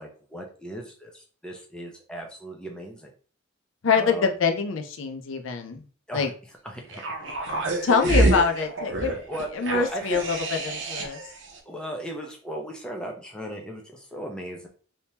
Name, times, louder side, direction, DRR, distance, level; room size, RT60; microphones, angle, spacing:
voice 1, 0.0-3.1 3.9-4.4 6.1-6.3 6.6-7.0 7.5-7.9 8.2-8.5 9.1-10.2 10.9-11.0 11.7-14.7, right 1 dB, 5° left, 0 dB, 0.6 m, -37 dB
voice 2, 3.8-5.8 6.1-6.3 7.8-9.2 9.5-10.4 10.6-11.2, left 5 dB, 70° left, 4 dB, 0.5 m, -24 dB
sound 1, 6.9-11.3 11.6-11.7, right 2 dB, 60° right, 0.8 m, -27 dB
3.4 x 2.8 x 2.8 m, 0.40 s
head